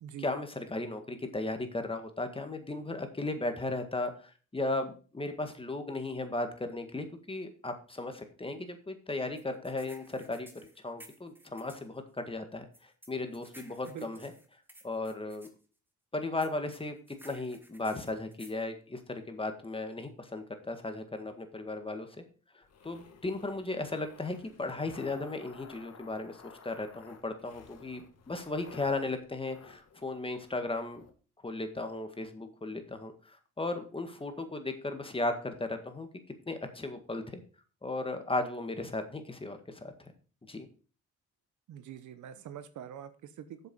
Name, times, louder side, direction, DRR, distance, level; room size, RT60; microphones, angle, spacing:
voice 1, 0.2-10.5 10.8-14.3 14.8-15.5 16.1-22.2 22.5-31.0 31.4-36.1 36.5-37.4 37.8-40.1 40.5-40.7, left 2 dB, 20° left, 7 dB, 1.8 m, -36 dB
sound 1, 9.4-11.9 12.7-15.5 16.4-18.6, right 1 dB, 5° right, 1.6 m, -55 dB
sound 2, 22.6-31.1, left 6 dB, 55° left, 1.7 m, -54 dB
voice 2, 41.7-43.6, right 9 dB, 75° right, 12 dB, 1.0 m, -44 dB
7.5 x 6.8 x 5.4 m, 0.39 s
cardioid pair, 90°, 30 cm